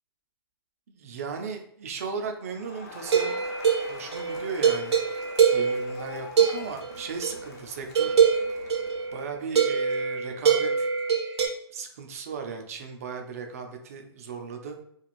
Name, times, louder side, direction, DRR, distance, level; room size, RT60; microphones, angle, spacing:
voice 1, 0.9-3.4 3.9-5.0 5.5-8.2 9.1-10.9 11.7-14.8, right 5 dB, 35° right, 4 dB, 0.3 m, -36 dB
Crowd, 2.4-9.4, left 4 dB, 40° left, 0.5 m, -46 dB
sound 1, 3.1-7.4 7.9-11.5, right 6 dB, 85° right, 0.6 m, -24 dB
3.0 x 2.4 x 2.4 m, 0.71 s
hypercardioid pair, 170°, 14 cm